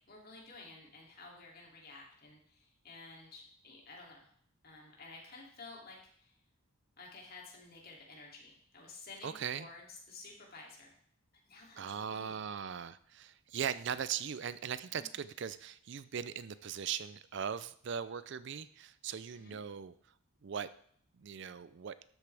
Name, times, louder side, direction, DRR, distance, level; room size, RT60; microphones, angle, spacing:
voice 1, 0.1-4.3 4.6-6.4 7.0-11.0 11.5-12.4 14.9-15.1 19.3-19.6, left 3 dB, 45° left, -2 dB, 2.8 m, -53 dB
voice 2, 9.2-9.7 11.8-19.9 20.4-20.7 21.2-22.0, right 7 dB, 55° right, 15 dB, 0.4 m, -39 dB
12.5 x 8.3 x 3.4 m, 0.63 s
head